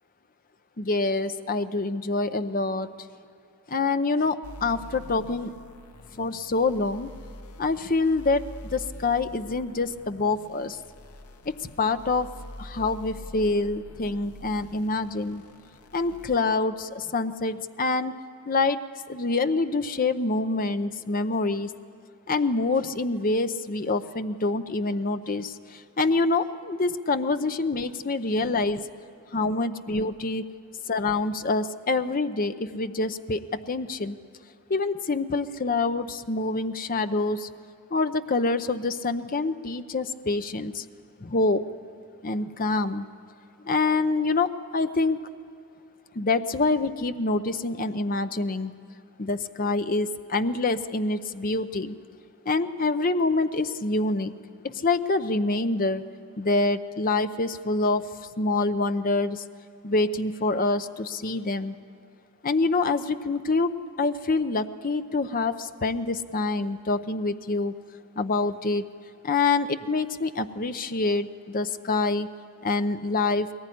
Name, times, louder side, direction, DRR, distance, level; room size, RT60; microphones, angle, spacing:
voice 1, 0.8-2.9 3.7-5.5 6.2-7.1 7.6-8.4 8.7-10.8 11.4-12.3 12.6-15.4 15.9-18.2 18.5-18.8 19.1-21.7 22.3-28.9 29.3-30.4 30.9-34.2 34.7-37.5 37.9-40.8 41.2-41.6 42.2-43.1 43.6-45.2 46.1-48.7 49.2-52.0 52.5-54.3 54.6-56.0 56.4-58.0 58.4-59.4 59.8-61.7 62.4-63.7 64.0-67.7 68.2-68.8 69.2-72.3 72.6-73.5, left 3 dB, 40° left, 10 dB, 0.7 m, -26 dB
sound 1, 4.4-16.3, left 1 dB, 80° left, 1.0 m, -45 dB
22.0 x 19.5 x 10.0 m, 2.5 s
head